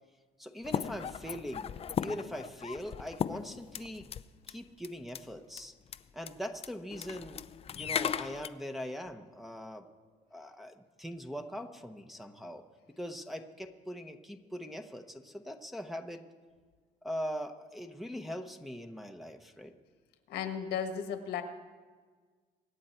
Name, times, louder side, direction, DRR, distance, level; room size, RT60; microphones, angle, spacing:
voice 1, 0.4-1.7 2.0-4.1 4.5-5.7 6.1-7.4 7.7-9.8 10.3-12.6 13.0-16.2 17.0-19.7, equal, ahead, 3 dB, 1.0 m, -41 dB
sound 1, 0.6-4.2 4.5-4.6 4.8-5.2 5.6-5.7 5.9-6.0 6.3-6.4 6.6-8.5, left 8 dB, 35° left, 0.5 m, -36 dB
voice 2, 20.3-21.4, left 8 dB, 75° left, 6 dB, 1.6 m, -35 dB
24.5 x 9.3 x 4.5 m, 1.5 s
cardioid pair, 110°, 17 cm